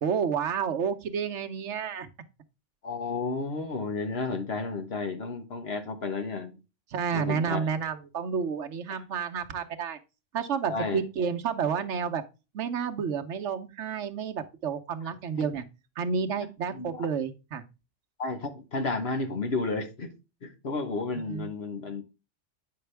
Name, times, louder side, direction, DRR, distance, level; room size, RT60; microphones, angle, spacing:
voice 1, 0.0-2.1 6.9-10.0 10.3-12.2 12.5-15.6 16.0-17.6 21.3-21.5, right 6 dB, 75° right, 1.1 m, -30 dB
voice 2, 2.8-6.5 7.1-7.7 10.7-11.0 15.4-15.5 16.4-16.5 16.7-17.0 18.2-20.1 20.4-22.0, left 3 dB, 60° left, 1.5 m, -32 dB
8.6 x 5.7 x 3.3 m
omnidirectional pair, 1.2 m